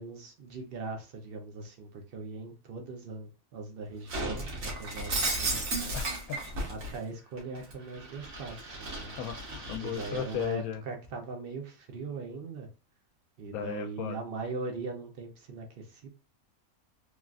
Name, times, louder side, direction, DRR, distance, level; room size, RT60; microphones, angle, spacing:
voice 1, 0.0-6.0 6.7-9.1 9.8-12.7 13.4-16.1, right 3 dB, 55° right, 0.7 m, -40 dB
Shatter, 4.1-7.0 7.4-10.5, right 2 dB, 70° right, 1.3 m, -35 dB
voice 2, 5.9-6.4 9.1-10.8 13.5-14.2, left 9 dB, 80° left, 1.0 m, -36 dB
3.1 x 2.4 x 2.3 m
omnidirectional pair, 1.5 m